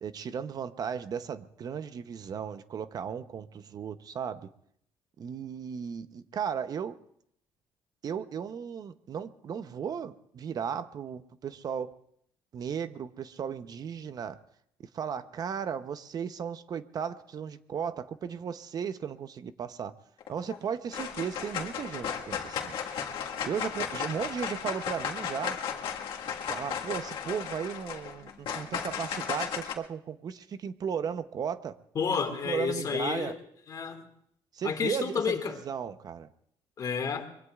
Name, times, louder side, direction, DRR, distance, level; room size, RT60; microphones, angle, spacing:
voice 1, 0.0-4.5 5.2-7.0 8.0-11.9 12.5-14.4 14.9-19.9 20.3-22.8 23.4-25.6 26.5-31.8 32.4-33.4 34.5-36.3, right 7 dB, 45° right, 12 dB, 0.7 m, -35 dB
sound 1, 20.2-20.6 20.9-29.7, left 7 dB, 70° left, 1.7 m, -35 dB
voice 2, 32.0-33.4 33.7-34.0 34.6-35.6 36.8-37.3, left 6 dB, 45° left, 5 dB, 2.0 m, -30 dB
24.5 x 23.0 x 2.4 m, 0.70 s
cardioid pair, 125°, 9 cm